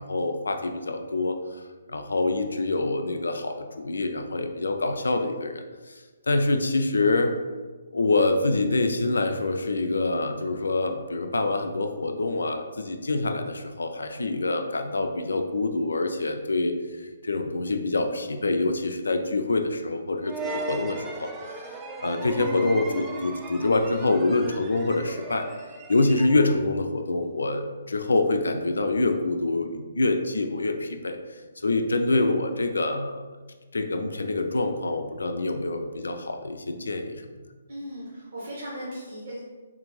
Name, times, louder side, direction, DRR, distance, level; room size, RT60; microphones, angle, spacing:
voice 1, 0.0-1.4 1.9-7.3 7.9-16.7 17.2-21.8 22.0-25.5 25.9-33.2 33.7-37.2, left 2 dB, 70° left, 6 dB, 0.3 m, -26 dB
sound 1, 20.3-26.7, right 3 dB, 15° right, 0.3 m, -37 dB
voice 2, 37.7-39.4, equal, 60° right, -7 dB, 1.1 m, -37 dB
3.6 x 2.5 x 3.1 m, 1.3 s
figure-of-eight pair, 135°, 0 cm